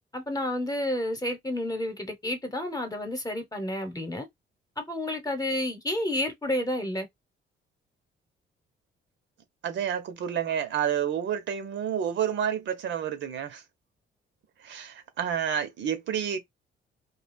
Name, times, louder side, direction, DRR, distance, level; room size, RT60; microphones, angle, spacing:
voice 1, 0.1-4.3 4.8-7.1, left 1 dB, 20° left, 1.0 m, -30 dB
voice 2, 9.6-13.6 14.6-16.4, right 8 dB, 65° right, 0.9 m, -29 dB
2.4 x 2.3 x 3.4 m
cardioid pair, 90°, 20 cm